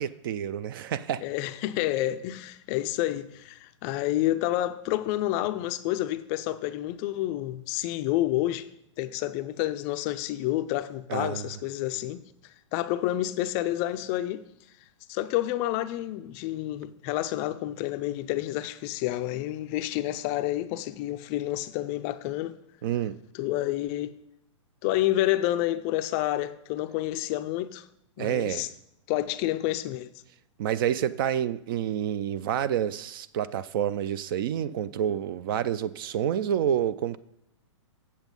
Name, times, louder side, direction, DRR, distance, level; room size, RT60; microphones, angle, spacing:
voice 1, 0.0-1.2 11.1-11.5 22.8-23.2 28.2-28.7 30.6-37.2, right 10 dB, 45° right, 0.4 m, -28 dB
voice 2, 1.2-8.7 9.0-14.4 15.1-22.6 23.3-24.1 24.8-27.8 28.2-28.7 29.1-30.1, left 14 dB, 30° left, 0.4 m, -29 dB
8.1 x 7.3 x 5.2 m
hypercardioid pair, 140°, 16 cm